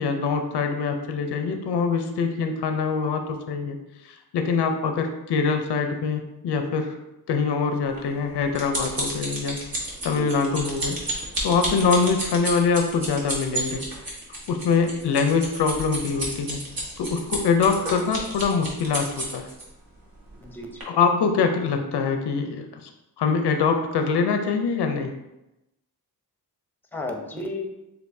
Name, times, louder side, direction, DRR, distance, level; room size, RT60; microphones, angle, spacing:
voice 1, 0.0-3.8 4.1-7.0 7.3-9.6 10.0-11.0 11.4-13.8 14.5-16.6 17.0-19.5 20.9-22.9 23.2-25.1, left 5 dB, 90° left, 6 dB, 0.6 m, -24 dB
sound 1, 8.0-19.6 20.3-20.5 20.8-20.9, right 1 dB, 60° right, 1.4 m, -31 dB
voice 2, 10.0-10.6 20.4-20.9 26.9-27.7, left 2 dB, 5° left, 3 dB, 0.7 m, -35 dB
6.5 x 2.7 x 2.6 m, 0.92 s
cardioid pair, 75°, 39 cm